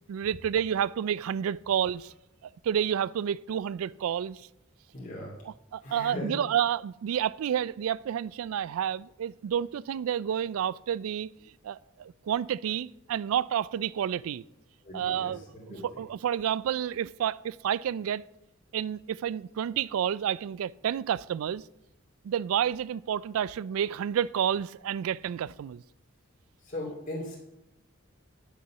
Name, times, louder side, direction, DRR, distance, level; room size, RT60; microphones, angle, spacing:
voice 1, 0.1-2.1 2.6-4.4 5.5-11.3 11.6-14.4 14.9-18.2 18.7-21.6 22.2-25.8, right 9 dB, 75° right, 0.3 m, -30 dB
voice 2, 4.9-5.3 5.8-6.4 14.8-16.0 26.6-27.4, left 1 dB, 35° left, 2.4 m, -38 dB
9.4 x 7.0 x 5.7 m
head